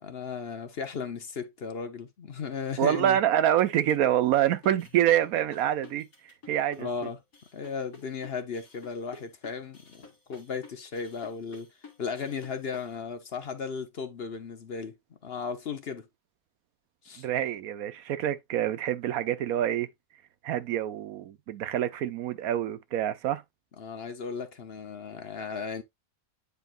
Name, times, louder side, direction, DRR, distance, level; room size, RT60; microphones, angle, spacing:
voice 1, 0.0-3.2 6.8-7.2 7.5-11.7 12.0-15.0 15.2-16.1 17.0-17.3 23.8-25.8, left 5 dB, 50° left, 0.9 m, -36 dB
voice 2, 2.8-6.1 6.5-6.9 17.2-19.9 20.4-23.4, right 11 dB, 80° right, 1.1 m, -26 dB
sound 1, 3.4-12.9, left 4 dB, 85° left, 2.5 m, -50 dB
9.1 x 4.5 x 2.5 m
omnidirectional pair, 1.5 m